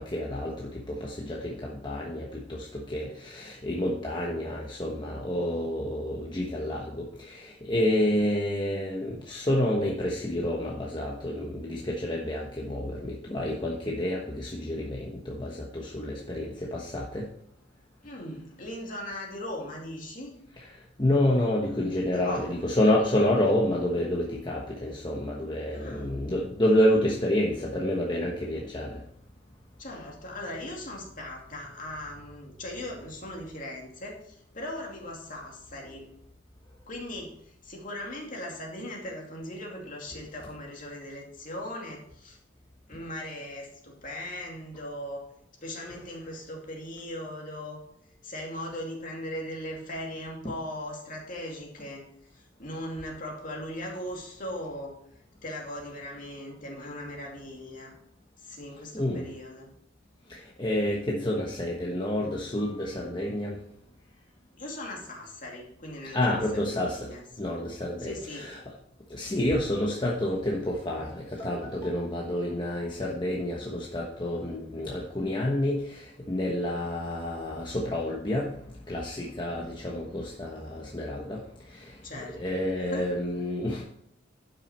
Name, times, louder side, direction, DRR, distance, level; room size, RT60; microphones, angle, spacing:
voice 1, 0.0-17.3 20.6-29.0 58.9-59.3 60.3-63.6 66.1-67.1 67.4-68.6 69.1-78.5 78.9-82.0 82.3-83.8, left 1 dB, 25° left, -2 dB, 1.1 m, -29 dB
voice 2, 18.0-20.3 22.1-22.5 25.7-26.1 29.8-36.1 36.9-42.4 42.9-45.3 45.6-47.8 48.2-52.0 52.3-55.0 55.4-57.9 58.4-59.7 64.6-67.2 68.0-68.5 79.5-79.7 82.0-82.4 82.8-83.1, left 1 dB, 45° left, -1 dB, 2.5 m, -39 dB
11.5 x 6.1 x 4.4 m, 0.72 s
head